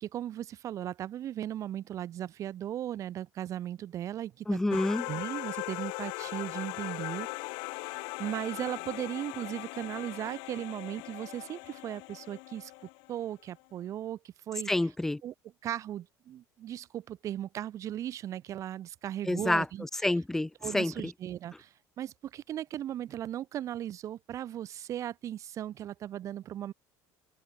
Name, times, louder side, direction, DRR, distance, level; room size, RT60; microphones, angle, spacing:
voice 1, 0.0-4.8 5.1-7.3 7.8-12.7 13.1-14.7 15.2-15.3 15.6-19.8 20.6-26.7, right 11 dB, 40° right, 1.3 m, -37 dB
voice 2, 4.5-5.0 14.7-15.2 19.3-19.7 20.0-21.1, left 2 dB, 5° left, 0.4 m, -28 dB
sound 1, 4.7-13.3, left 31 dB, 80° left, 0.7 m, -40 dB
cardioid pair, 150°, 8 cm